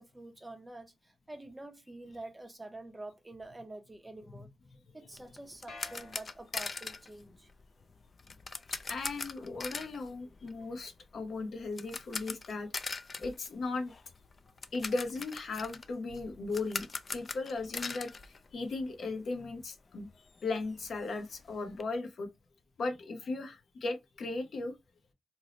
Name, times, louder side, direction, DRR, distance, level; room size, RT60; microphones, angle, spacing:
voice 1, 0.0-4.5 4.9-7.5, right 2 dB, 15° right, 0.5 m, -47 dB
sound 1, 5.1-19.1 19.4-19.5 19.9-20.0 20.3-21.8, left 4 dB, 40° left, 0.3 m, -42 dB
sound 2, 5.7-7.0, left 3 dB, 85° left, 1.0 m, -51 dB
voice 2, 8.9-13.9 14.7-16.9 17.1-20.1 20.4-22.3 22.8-24.8, left 3 dB, 65° left, 0.7 m, -37 dB
2.6 x 2.0 x 4.0 m
cardioid pair, 95°, 0 cm